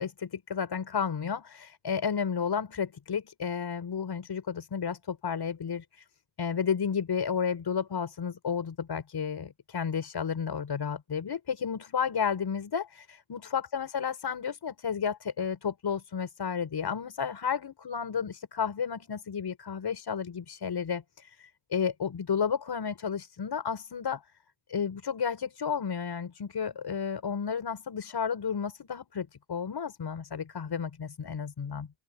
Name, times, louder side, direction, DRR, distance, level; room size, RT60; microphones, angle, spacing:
voice 1, 0.0-6.0 6.4-24.2 24.7-31.9, left 7 dB, 55° left, 7.7 m, -32 dB
wide cardioid pair, 125°, 48 cm